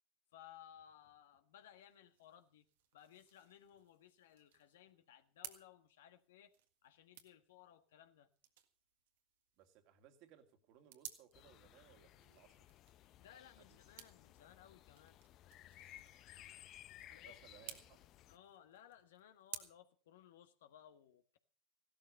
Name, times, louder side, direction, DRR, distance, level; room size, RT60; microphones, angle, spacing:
voice 1, 0.3-2.7 2.9-6.5 6.8-8.3 13.2-15.2 17.1-17.4 18.3-21.4, left 10 dB, 75° left, 1.5 m, -61 dB
sound 1, 1.5-19.6, right 11 dB, 75° right, 1.6 m, -58 dB
voice 2, 9.6-12.7 13.6-13.8 17.1-18.0, right 10 dB, 60° right, 2.4 m, -64 dB
sound 2, 11.3-18.4, left 13 dB, 50° left, 0.7 m, -59 dB
16.0 x 12.5 x 5.4 m
hypercardioid pair, 85°, 0 cm